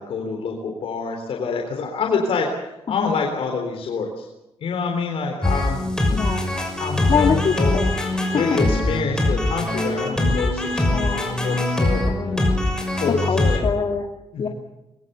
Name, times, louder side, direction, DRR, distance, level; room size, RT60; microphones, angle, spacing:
voice 1, 0.0-4.3 4.6-5.9 6.8-7.8 8.3-12.0 12.9-13.6 14.3-14.5, left 5 dB, 75° left, 2 dB, 3.8 m, -26 dB
voice 2, 2.9-3.2 6.1-6.6 7.1-8.4 10.9-11.6 12.1-12.5 13.1-14.1 14.4-14.5, left 6 dB, 50° left, 2 dB, 2.2 m, -25 dB
sound 1, 5.4-13.6, left 2 dB, 5° left, 6.0 m, -22 dB
24.0 x 21.5 x 6.9 m, 0.93 s
cardioid pair, 120°, 10 cm